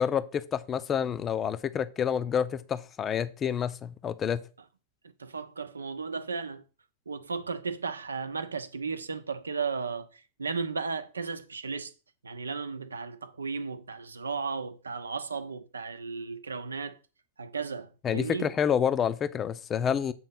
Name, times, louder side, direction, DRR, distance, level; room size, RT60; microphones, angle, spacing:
voice 1, 0.0-4.4 18.0-20.1, left 8 dB, 25° left, 0.6 m, -28 dB
voice 2, 5.2-6.6 7.1-11.9 12.2-17.0 17.4-18.5, right 5 dB, 75° right, 0.8 m, -35 dB
7.9 x 4.1 x 5.7 m
figure-of-eight pair, 95°, 0 cm